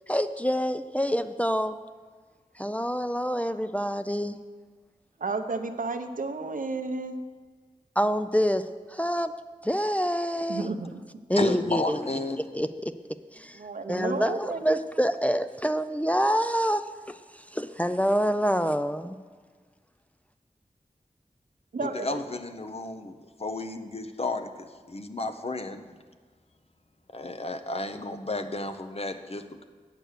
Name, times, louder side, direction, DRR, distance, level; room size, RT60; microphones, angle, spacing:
voice 1, 0.1-1.8 2.6-4.4 8.0-9.3 9.6-10.7 11.3-12.0 12.5-12.9 13.3-13.6 13.9-17.2 17.5-19.2, equal, 10° left, 9 dB, 0.4 m, -26 dB
voice 2, 5.2-7.2 10.5-11.0 13.5-14.9 21.7-22.2, right 3 dB, 70° right, 7 dB, 0.7 m, -32 dB
voice 3, 11.4-12.4 21.8-25.8 27.1-29.6, left 2 dB, 45° left, 7 dB, 0.7 m, -32 dB
9.2 x 6.7 x 6.5 m, 1.5 s
wide cardioid pair, 50°, 14 cm